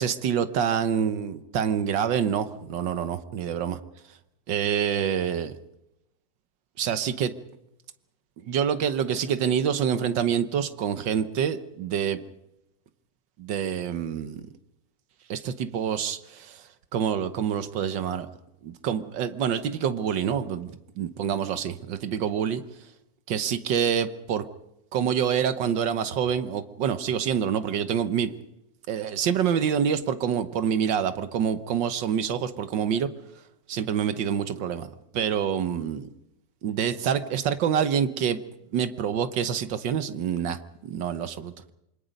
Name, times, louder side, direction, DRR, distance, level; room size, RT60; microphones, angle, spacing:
voice 1, 0.0-3.8 4.5-5.6 6.8-7.3 8.4-12.2 13.4-14.4 15.3-18.3 18.6-22.6 23.3-24.4 24.9-28.4 28.9-33.1 33.7-36.1 36.6-38.4 38.7-41.7, right 8 dB, 90° right, 11 dB, 1.7 m, -27 dB
26.0 x 24.0 x 5.3 m, 0.88 s
omnidirectional pair, 1.9 m